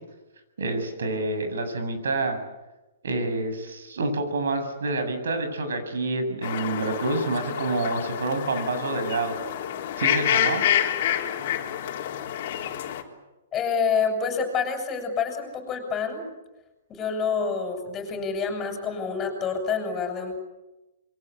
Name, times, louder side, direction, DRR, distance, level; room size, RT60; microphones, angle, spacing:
voice 1, 0.6-2.4 3.0-9.3 10.0-10.6, right 2 dB, 80° right, 8 dB, 7.7 m, -28 dB
sound 1, 6.4-13.0, left 11 dB, 45° left, 3.6 m, -28 dB
voice 2, 13.5-16.2 16.9-20.4, left 5 dB, 15° left, 4 dB, 7.0 m, -27 dB
27.5 x 23.0 x 8.5 m, 1.0 s
hypercardioid pair, 160°, 0 cm